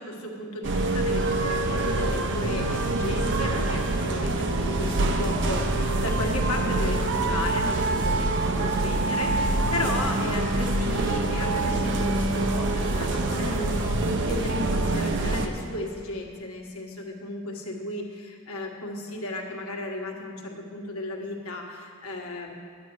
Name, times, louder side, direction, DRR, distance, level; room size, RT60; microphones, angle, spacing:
voice 1, 0.0-22.6, left 2 dB, 90° left, 0 dB, 1.3 m, -34 dB
sound 1, 0.6-15.5, right 2 dB, 60° right, 0.7 m, -25 dB
sound 2, 2.6-16.5, left 1 dB, 50° left, 1.1 m, -47 dB
11.0 x 8.4 x 4.7 m, 2.1 s
head